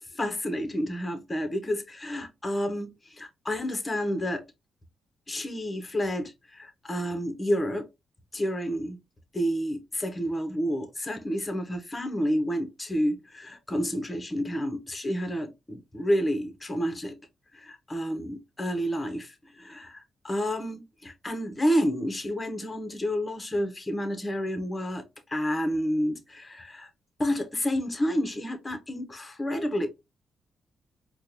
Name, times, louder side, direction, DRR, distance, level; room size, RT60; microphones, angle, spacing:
voice 1, 0.1-4.4 5.3-7.9 8.3-9.0 9.3-17.2 17.5-25.0 25.3-26.9 27.2-29.9, equal, 20° left, 0.9 m, -30 dB
4.4 x 2.2 x 2.7 m
supercardioid pair, 55°, 0 cm